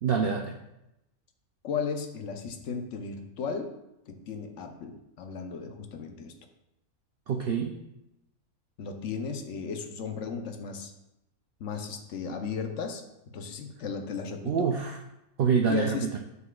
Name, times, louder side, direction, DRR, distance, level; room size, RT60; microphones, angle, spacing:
voice 1, 0.0-0.5 7.3-7.8 14.4-15.0 15.4-16.2, right 6 dB, 75° right, 2 dB, 0.5 m, -26 dB
voice 2, 1.6-3.8 4.1-6.3 8.8-10.9 11.6-14.7 15.7-16.1, left 5 dB, 60° left, 5 dB, 0.9 m, -35 dB
7.0 x 6.7 x 2.3 m, 0.90 s
omnidirectional pair, 1.6 m